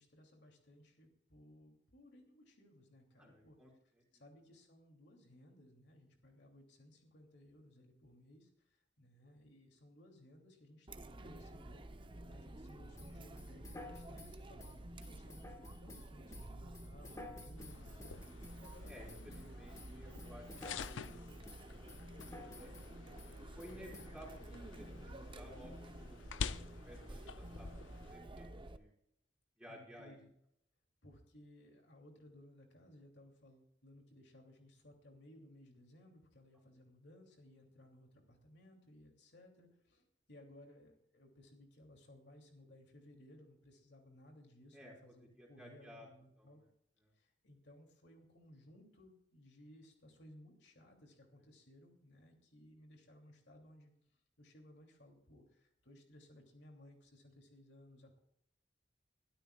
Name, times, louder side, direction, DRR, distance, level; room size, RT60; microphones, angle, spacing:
voice 1, 0.0-3.6 4.1-11.8 12.2-19.4 19.9-20.2 29.7-30.3 31.0-46.6 47.1-58.2, left 1 dB, 65° left, 2 dB, 3.0 m, -61 dB
voice 2, 3.1-3.7 4.1-4.2 18.8-20.5 20.8-21.4 22.5-22.7 23.6-26.5 26.8-28.9 29.6-30.2 44.7-46.1 46.4-46.5, equal, 5° right, -3 dB, 5.4 m, -56 dB
Chatter, 10.9-28.8, right 1 dB, 25° right, 0.8 m, -51 dB
sound 1, 13.0-19.5 19.7-21.2 21.5-22.9 23.2-23.3 23.6-24.1, left 2 dB, 15° left, 1.7 m, -53 dB
sound 2, 17.6-28.1, left 5 dB, 85° left, 0.6 m, -49 dB
23.0 x 13.0 x 2.4 m, 0.74 s
head